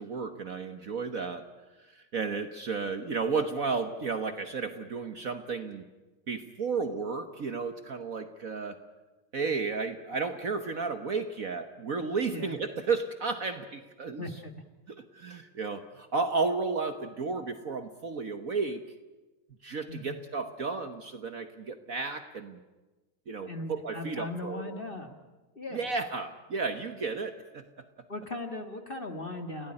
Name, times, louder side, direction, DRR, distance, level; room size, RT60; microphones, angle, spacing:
voice 1, 0.0-1.5 1.8-5.8 6.3-8.8 9.3-14.2 15.0-18.8 19.6-22.6 23.3-24.8 25.7-27.7, right 4 dB, 50° right, 9 dB, 1.3 m, -33 dB
voice 2, 14.2-14.6 19.9-20.2 23.5-25.2 25.5-26.0 28.1-29.7, left 2 dB, 30° left, 6 dB, 1.7 m, -38 dB
29.5 x 17.0 x 10.0 m, 1.2 s
omnidirectional pair, 2.3 m